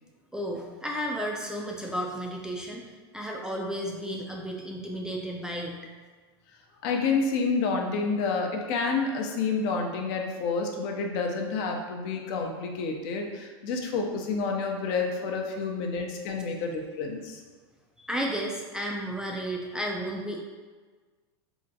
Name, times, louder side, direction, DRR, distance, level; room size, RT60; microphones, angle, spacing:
voice 1, 0.3-2.8 3.1-5.8 18.1-20.4, equal, 5° right, -1 dB, 0.3 m, -33 dB
voice 2, 6.8-17.4, left 4 dB, 55° left, 2 dB, 0.5 m, -29 dB
3.7 x 2.1 x 2.7 m, 1.4 s
hypercardioid pair, 110°, 13 cm